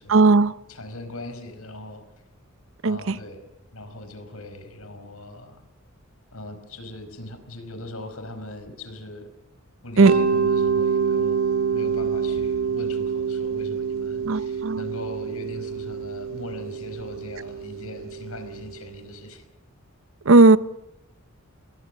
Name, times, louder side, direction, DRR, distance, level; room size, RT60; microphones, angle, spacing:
voice 1, 0.1-0.5 2.8-3.0 10.0-10.1 14.3-14.8 20.3-20.6, right 3 dB, 65° right, 15 dB, 0.8 m, -15 dB
voice 2, 0.7-2.0 2.8-3.4 3.7-5.6 6.3-9.3 9.8-19.5, left 1 dB, 90° left, 9 dB, 4.8 m, -40 dB
Mallet percussion, 10.0-18.8, right 6 dB, 85° right, 2.0 m, -26 dB
27.5 x 22.0 x 6.6 m, 0.87 s
head